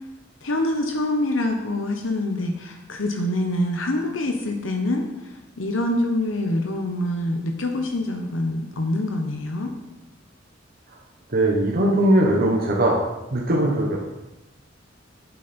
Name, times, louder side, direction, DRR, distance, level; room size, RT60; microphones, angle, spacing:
voice 1, 0.4-9.7, left 1 dB, 85° left, 4 dB, 1.0 m, -25 dB
voice 2, 11.3-13.0 13.3-14.0, right 1 dB, 50° right, -1 dB, 1.2 m, -19 dB
8.7 x 8.3 x 4.3 m, 0.96 s
head